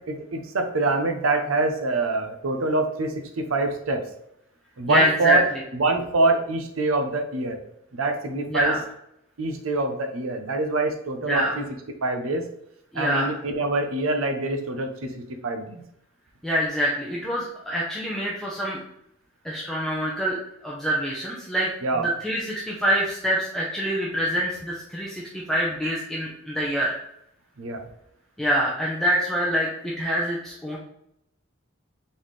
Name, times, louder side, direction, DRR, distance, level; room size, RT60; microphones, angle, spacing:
voice 1, 0.1-4.0 4.8-7.6 7.9-8.7 9.4-11.7 12.0-12.5 12.9-15.1 15.4-15.8 21.8-22.1 27.6-27.8, right 3 dB, 90° right, 6 dB, 0.7 m, -25 dB
voice 2, 4.9-5.4 8.5-8.8 11.2-11.5 12.9-13.3 16.4-18.8 19.4-20.4 20.6-21.7 22.0-27.0 28.4-30.8, equal, ahead, -5 dB, 0.6 m, -25 dB
4.2 x 3.6 x 3.2 m, 0.76 s
head